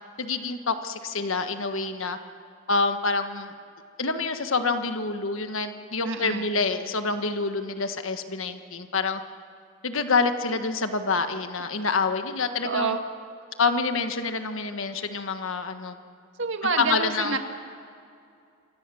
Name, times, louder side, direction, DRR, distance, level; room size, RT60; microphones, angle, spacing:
voice 1, 0.2-2.2 2.7-3.5 4.0-9.2 9.8-13.0 13.6-16.0 16.8-17.4, left 4 dB, 70° left, 8 dB, 1.4 m, -27 dB
voice 2, 6.0-6.6 12.6-13.0 16.4-17.4, right 4 dB, 60° right, 5 dB, 2.0 m, -28 dB
27.5 x 25.0 x 7.1 m, 2.4 s
head